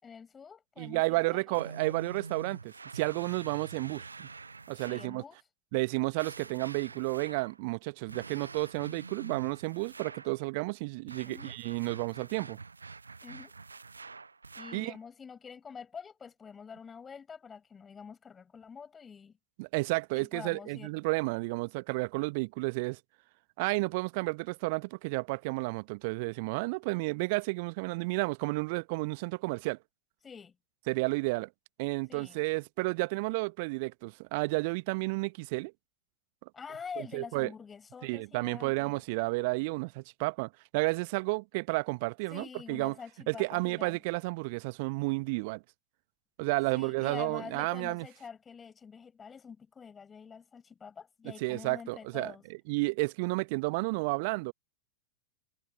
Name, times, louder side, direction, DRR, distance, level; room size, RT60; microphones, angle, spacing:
voice 1, 0.0-1.9 4.8-5.4 11.2-11.6 13.2-13.5 14.5-19.4 20.1-20.9 30.2-30.5 32.1-32.4 36.5-39.0 42.3-44.0 46.7-52.4, left 6 dB, 20° left, 6.5 m, -46 dB
voice 2, 0.8-4.3 4.7-5.2 5.7-12.6 14.7-14.9 19.6-23.0 23.6-29.8 30.9-31.5 31.8-35.7 37.0-37.5 38.0-42.9 43.3-45.6 46.4-48.1 51.4-52.3 52.7-54.5, right 27 dB, 50° right, 1.1 m, -32 dB
sound 1, 1.5-5.2 6.2-7.6 8.1-10.4 11.1-14.9, right 4 dB, 80° right, 0.8 m, -46 dB
figure-of-eight pair, 90°, 0 cm